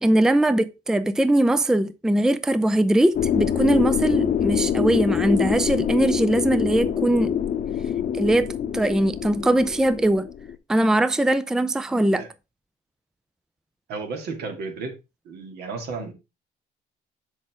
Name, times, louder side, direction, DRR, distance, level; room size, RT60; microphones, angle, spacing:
voice 1, 0.0-7.4 8.1-10.3 10.7-12.2, right 1 dB, 5° right, 0.4 m, -21 dB
sound 1, 3.1-10.5, left 9 dB, 50° left, 0.8 m, -25 dB
voice 2, 13.9-14.9 15.2-16.1, right 4 dB, 75° right, 2.5 m, -33 dB
7.5 x 6.4 x 3.7 m
cardioid pair, 110°, 17 cm